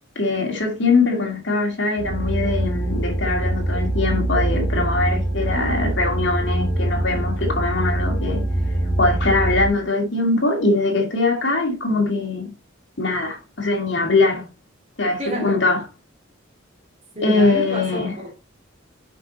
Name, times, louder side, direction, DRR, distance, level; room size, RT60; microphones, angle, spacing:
voice 1, 0.2-8.4 9.0-12.5 13.0-14.5 15.0-15.8 17.2-18.1, left 3 dB, 60° left, 2.3 m, -22 dB
sound 1, 2.0-9.7, right 1 dB, 15° left, 2.5 m, -23 dB
voice 2, 15.2-15.6 17.1-18.3, equal, 30° right, 2.7 m, -29 dB
7.6 x 5.5 x 4.1 m
head